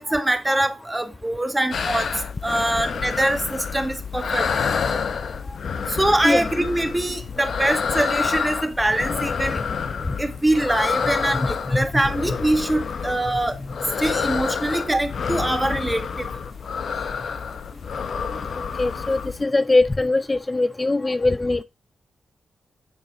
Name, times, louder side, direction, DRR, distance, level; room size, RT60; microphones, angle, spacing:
voice 1, 0.0-4.5 5.9-9.6 10.2-13.6 14.0-16.3, right 1 dB, 15° right, 1.9 m, -23 dB
sound 1, 1.7-19.4, left 6 dB, 70° left, 1.0 m, -28 dB
voice 2, 18.8-21.6, left 2 dB, 30° left, 0.4 m, -21 dB
9.5 x 7.0 x 3.7 m
cardioid pair, 50°, 0 cm